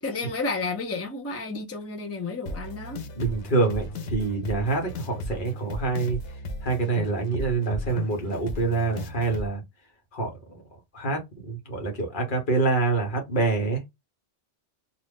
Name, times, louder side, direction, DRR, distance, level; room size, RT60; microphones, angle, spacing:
voice 1, 0.0-3.0, left 3 dB, 20° left, 0.5 m, -31 dB
sound 1, 2.5-9.5, left 1 dB, 90° left, 0.9 m, -35 dB
voice 2, 3.2-6.2 6.6-9.6 10.1-10.6 10.9-13.9, right 3 dB, 50° left, 1.2 m, -26 dB
2.5 x 2.4 x 3.3 m
omnidirectional pair, 1.1 m